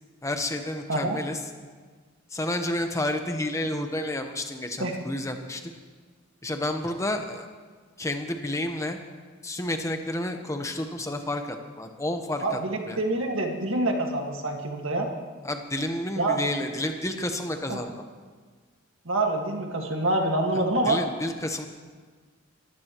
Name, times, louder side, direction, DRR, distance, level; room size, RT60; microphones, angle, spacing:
voice 1, 0.2-1.4 2.3-5.6 6.4-7.5 8.0-9.0 9.4-12.6 12.9-13.0 15.4-17.9 20.5-21.7, left 1 dB, 15° left, 5 dB, 1.0 m, -30 dB
voice 2, 12.4-15.1 16.2-16.5 17.7-17.8 19.1-21.0, right 2 dB, 75° right, 2 dB, 1.9 m, -26 dB
23.0 x 15.0 x 3.1 m, 1.5 s
head